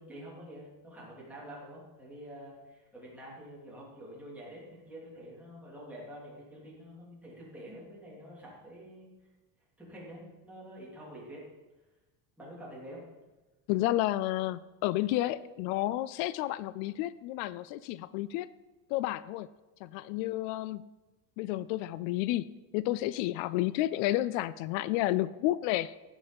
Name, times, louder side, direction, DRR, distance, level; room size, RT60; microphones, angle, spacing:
voice 1, 0.0-9.1 9.8-11.5 12.4-13.0, equal, 5° right, -6 dB, 3.4 m, -47 dB
voice 2, 13.7-18.5 18.9-19.5 19.8-20.8 21.4-22.4 22.7-25.9, left 15 dB, 80° left, 17 dB, 0.6 m, -31 dB
15.0 x 8.3 x 5.4 m, 1.1 s
cardioid pair, 175°, 43 cm